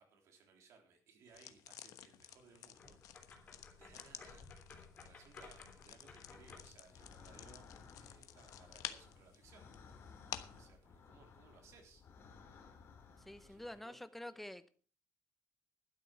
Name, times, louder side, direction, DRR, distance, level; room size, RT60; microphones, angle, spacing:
voice 1, 0.0-3.5 3.8-4.5 5.0-7.7 8.0-12.0 12.4-12.7 13.0-14.0, right 5 dB, 60° right, 3 dB, 3.5 m, -64 dB
sound 1, 1.3-10.6, left 12 dB, 90° left, 1.1 m, -52 dB
sound 2, 2.7-6.8, left 4 dB, 25° left, 3.7 m, -57 dB
sound 3, 6.2-13.8, left 5 dB, 45° left, 3.1 m, -58 dB
voice 2, 13.2-14.7, left 1 dB, 5° left, 12 dB, 0.7 m, -48 dB
12.0 x 9.7 x 5.9 m, 0.43 s
cardioid pair, 175°, 6 cm